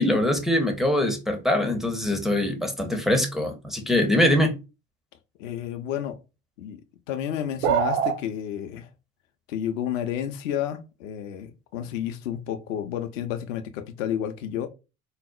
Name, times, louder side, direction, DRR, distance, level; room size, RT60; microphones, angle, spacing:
voice 1, 0.0-4.5, left 1 dB, ahead, 0.4 m, -23 dB
voice 2, 5.4-6.2 6.6-6.8 7.1-8.9 9.5-14.7, left 10 dB, 60° left, 0.5 m, -31 dB
sound 1, 7.6-8.2, right 8 dB, 55° right, 0.5 m, -22 dB
3.9 x 2.0 x 2.3 m
figure-of-eight pair, 65°, 43 cm